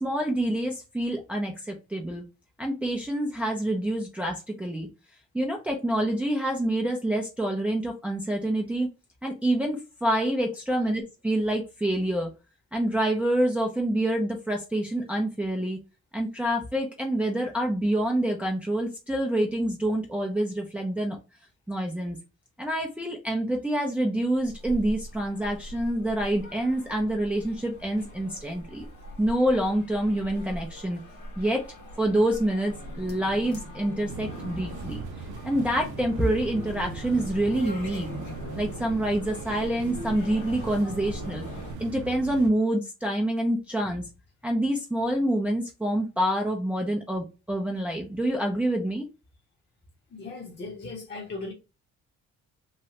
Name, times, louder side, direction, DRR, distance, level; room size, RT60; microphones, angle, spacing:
voice 1, 0.0-2.2 2.6-4.9 5.3-8.9 9.2-12.3 12.7-15.8 16.1-21.2 21.7-22.2 22.6-28.8 29.2-31.0 31.4-31.6 32.0-35.0 35.4-38.1 38.5-41.4 41.8-44.1 44.4-49.1, right 1 dB, 5° right, 0.5 m, -27 dB
sound 1, 24.4-41.7, equal, 90° left, 1.6 m, -41 dB
sound 2, 34.1-42.5, right 4 dB, 85° right, 0.5 m, -40 dB
voice 2, 50.1-51.5, left 3 dB, 35° left, 1.0 m, -38 dB
3.1 x 2.3 x 2.8 m
cardioid pair, 90°, 30 cm